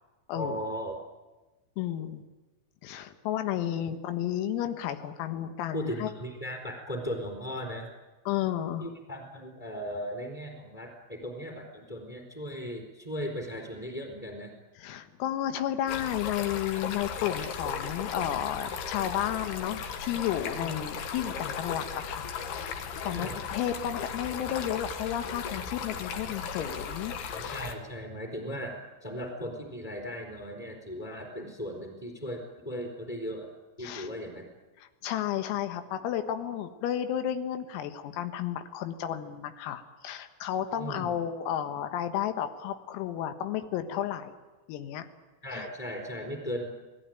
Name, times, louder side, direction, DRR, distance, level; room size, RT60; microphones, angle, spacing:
voice 1, 0.3-1.0 5.7-7.9 8.8-14.5 20.6-20.7 23.1-23.4 27.3-33.5 33.8-34.5 40.8-41.2 45.4-46.7, equal, 10° left, 1 dB, 3.0 m, -37 dB
voice 2, 1.8-2.2 2.8-6.1 8.3-8.9 14.8-22.7 23.0-27.6 33.8-34.1 35.0-44.4 44.7-45.1 45.5-45.7, left 11 dB, 85° left, 8 dB, 4.1 m, -32 dB
Stream, 15.9-27.8, left 6 dB, 65° left, 3.1 m, -36 dB
28.5 x 19.0 x 9.2 m, 1.2 s
omnidirectional pair, 6.0 m